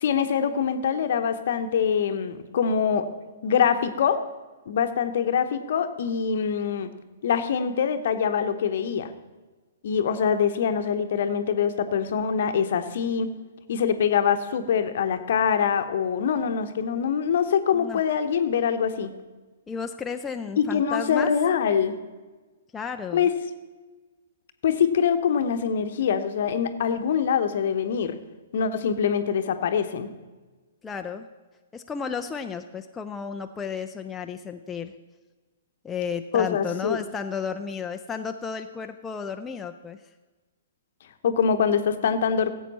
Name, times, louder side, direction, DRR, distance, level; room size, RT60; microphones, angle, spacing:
voice 1, 0.0-4.2 4.7-6.9 7.2-9.1 9.8-13.3 13.7-19.1 20.6-22.0 23.1-23.3 24.6-28.2 28.5-30.1 36.3-37.0 41.2-42.5, left 7 dB, 55° left, 8 dB, 0.9 m, -24 dB
voice 2, 19.7-21.3 22.7-23.3 30.8-31.3 31.7-34.9 35.8-40.0, left 6 dB, 15° left, 5 dB, 0.5 m, -33 dB
16.0 x 8.1 x 4.2 m, 1.3 s
figure-of-eight pair, 115°, 0 cm